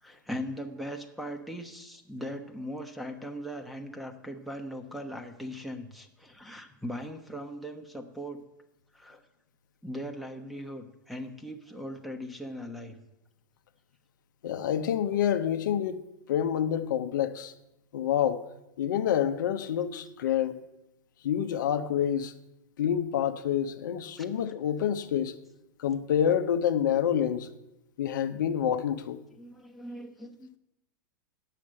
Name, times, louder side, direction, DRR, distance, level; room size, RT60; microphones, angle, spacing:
voice 1, 0.0-8.4 8.9-9.2 9.8-13.0 24.2-24.3 29.3-30.5, equal, ahead, 1.1 m, -39 dB
voice 2, 14.4-16.0 16.3-17.5 17.9-18.4 18.8-20.6 21.2-22.3 22.8-25.4 25.8-27.5 28.0-29.2, left 9 dB, 70° left, 0.7 m, -27 dB
9.3 x 6.7 x 7.6 m
hypercardioid pair, 105°, 11 cm